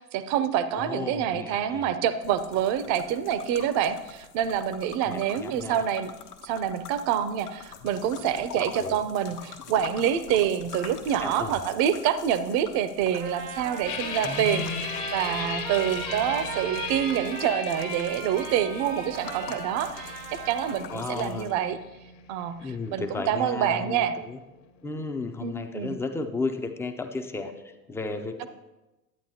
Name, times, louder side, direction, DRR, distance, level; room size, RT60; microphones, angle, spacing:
voice 1, 0.0-6.1 6.4-14.6 15.1-20.2 20.5-21.8 22.3-24.1 25.4-26.0 28.4-28.5, right 9 dB, 40° right, 13 dB, 0.6 m, -27 dB
voice 2, 0.7-2.0 5.0-5.8 8.6-9.0 11.2-11.5 14.2-14.9 20.9-21.5 22.6-24.4 24.8-28.5, left 3 dB, 5° left, 6 dB, 0.4 m, -34 dB
sound 1, 2.2-21.5, left 8 dB, 80° left, 1.1 m, -45 dB
Trumpet, 13.1-20.9, right 7 dB, 80° right, 1.1 m, -38 dB
sound 2, 13.9-26.0, left 7 dB, 55° left, 1.1 m, -38 dB
12.0 x 8.6 x 2.8 m, 1.0 s
hypercardioid pair, 85°, 45 cm